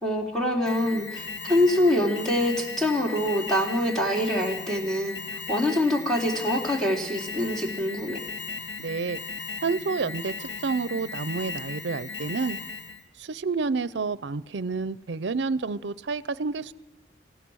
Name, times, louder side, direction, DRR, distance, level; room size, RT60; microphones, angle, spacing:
voice 1, 0.0-5.2 5.5-8.2, left 1 dB, 5° left, -2 dB, 3.0 m, -25 dB
Alarm, 0.7-13.1, left 4 dB, 80° left, 1.7 m, -37 dB
voice 2, 8.8-9.2 9.6-12.6 13.2-16.7, right 4 dB, 70° right, 17 dB, 0.6 m, -29 dB
28.0 x 15.5 x 6.3 m, 1.1 s
head